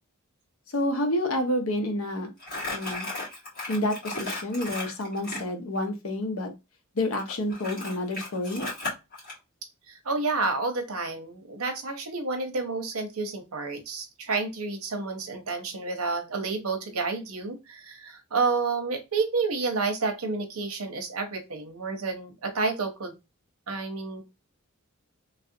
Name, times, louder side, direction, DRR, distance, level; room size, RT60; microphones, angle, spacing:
voice 1, 0.7-2.3 2.7-3.1 3.7-6.5 7.0-8.7, left 1 dB, 70° left, 5 dB, 0.8 m, -29 dB
Crumpling crinkling, 2.4-5.5 7.1-9.3, left 2 dB, 45° left, 1.7 m, -35 dB
voice 2, 9.9-23.1 23.7-24.2, right 4 dB, 85° right, 6 dB, 0.8 m, -30 dB
3.1 x 2.4 x 2.7 m, 0.25 s
head